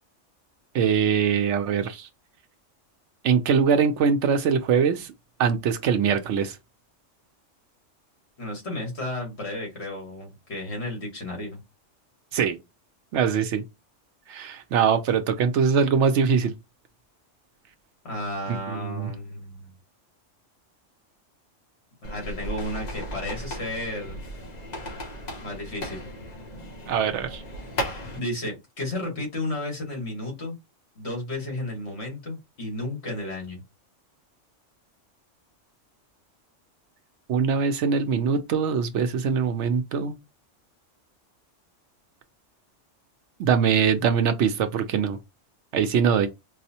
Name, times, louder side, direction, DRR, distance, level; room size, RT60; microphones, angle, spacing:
voice 1, 0.7-2.1 3.2-5.1 5.4-6.6 12.3-12.6 13.1-13.6 14.3-16.5 18.7-19.1 26.9-27.4 37.3-40.2 43.4-45.2 45.7-46.3, right 6 dB, 70° right, 0.8 m, -22 dB
voice 2, 8.4-11.6 18.0-19.7 22.0-24.2 25.4-26.1 28.2-30.5 31.0-33.6, left 1 dB, 60° left, 1.9 m, -33 dB
sound 1, 22.0-28.2, equal, 40° left, 0.7 m, -36 dB
4.7 x 2.1 x 2.7 m
omnidirectional pair, 1.3 m